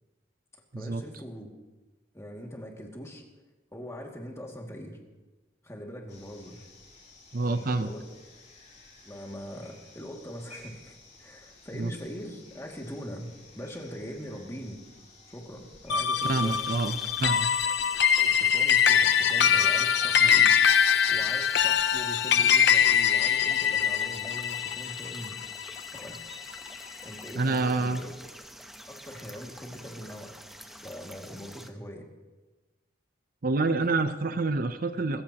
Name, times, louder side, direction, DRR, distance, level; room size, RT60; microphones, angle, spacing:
voice 1, 0.7-1.5 2.1-3.2 3.7-5.0 5.6-6.6 7.4-8.1 9.0-14.8 15.3-16.6 17.9-20.6 21.1-25.4 25.9-26.2 27.0-28.1 28.9-30.3 30.8-32.1, equal, 15° left, 0 dB, 2.2 m, -41 dB
sound 1, 6.1-17.3, left 2 dB, 40° left, 5.4 m, -54 dB
voice 2, 7.3-7.9 11.7-11.9 16.2-17.5 27.4-28.0 33.4-35.2, right 3 dB, 50° right, 9 dB, 0.6 m, -27 dB
sound 2, 15.9-26.5, left 8 dB, 65° left, 0.7 m, -23 dB
sound 3, 16.2-31.7, equal, ahead, 0.9 m, -47 dB
26.0 x 15.0 x 3.0 m, 1.2 s
head